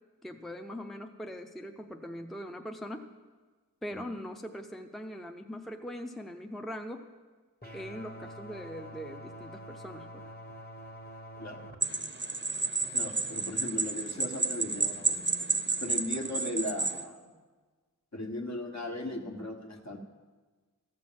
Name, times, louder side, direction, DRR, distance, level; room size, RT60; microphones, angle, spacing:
voice 1, 0.2-3.1 3.8-7.1 7.7-10.3, equal, ahead, 5 dB, 0.6 m, -41 dB
sound 1, 7.6-11.7, equal, 30° left, 1.4 m, -46 dB
sound 2, 11.8-17.0, right 3 dB, 35° right, 0.7 m, -31 dB
voice 2, 12.9-15.3 15.8-17.2 18.1-20.0, left 1 dB, 55° left, 2 dB, 1.4 m, -37 dB
14.0 x 6.1 x 7.4 m, 1.4 s
wide cardioid pair, 40°, 34 cm